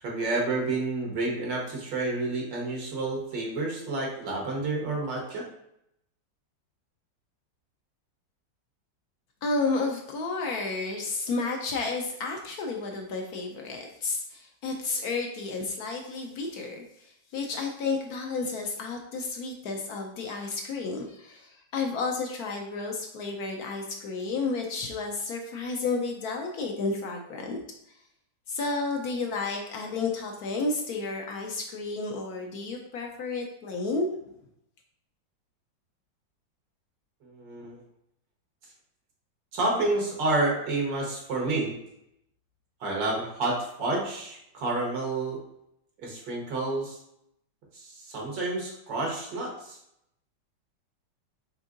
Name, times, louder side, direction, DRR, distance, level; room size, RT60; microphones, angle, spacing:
voice 1, 0.0-5.4 37.2-37.8 39.5-41.8 42.8-45.4 46.0-47.0 47.7-49.8, right 2 dB, 85° right, -2 dB, 2.0 m, -29 dB
voice 2, 9.4-27.6 28.5-34.3, left 3 dB, 70° left, 2 dB, 0.9 m, -31 dB
5.2 x 3.6 x 2.5 m, 0.77 s
omnidirectional pair, 1.9 m